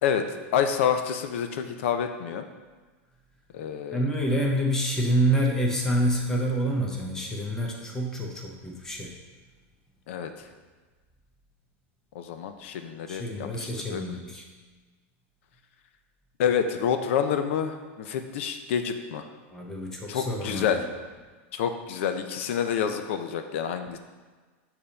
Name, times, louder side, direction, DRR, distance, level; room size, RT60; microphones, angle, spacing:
voice 1, 0.0-2.5 3.5-4.0 10.1-10.5 12.1-14.0 16.4-19.2 20.1-20.8 21.5-24.0, left 8 dB, 65° left, 7 dB, 0.5 m, -28 dB
voice 2, 3.9-9.1 13.1-14.4 19.5-20.8, right 1 dB, 5° left, -1 dB, 0.7 m, -27 dB
6.7 x 2.9 x 5.1 m, 1.4 s
supercardioid pair, 170°, 7 cm